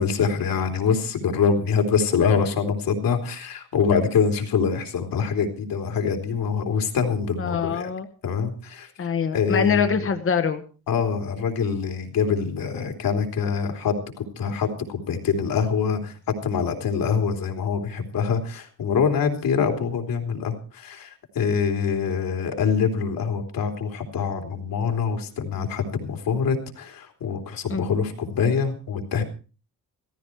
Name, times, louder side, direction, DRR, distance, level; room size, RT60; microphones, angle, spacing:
voice 1, 0.0-7.9 8.2-8.9 9.3-9.9 10.9-29.2, left 6 dB, 85° left, 4 dB, 3.5 m, -25 dB
voice 2, 7.4-8.1 9.0-10.6 27.7-27.9, left 6 dB, 40° left, 7 dB, 1.2 m, -24 dB
16.0 x 15.0 x 4.6 m, 0.36 s
wide cardioid pair, 130°, 34 cm